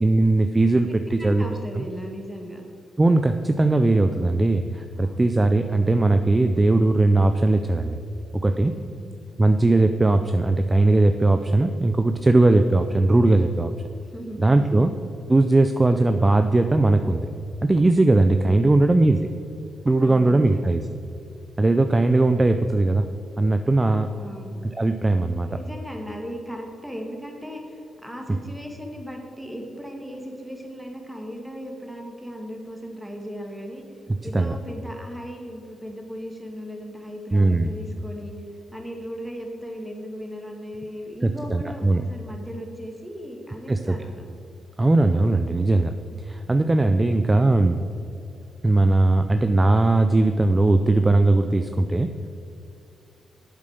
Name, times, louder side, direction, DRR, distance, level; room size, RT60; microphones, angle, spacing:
voice 1, 0.0-1.4 1.8-1.9 3.0-8.0 8.3-8.8 9.4-13.7 14.4-14.9 15.3-17.3 17.6-19.3 19.8-20.8 21.6-23.1 23.4-24.1 24.8-25.5 34.3-34.6 37.3-37.7 41.2-42.0 43.7-44.0 44.8-45.9 46.2-47.8 48.6-52.3, right 2 dB, 25° right, 8 dB, 0.5 m, -19 dB
voice 2, 0.9-2.6 4.9-5.3 8.7-9.1 14.1-14.9 20.0-20.7 24.1-24.6 25.5-33.8 34.2-38.3 38.7-44.2, equal, 5° right, 1 dB, 2.0 m, -37 dB
8.2 x 7.4 x 6.6 m, 2.6 s
cardioid pair, 70°, 0 cm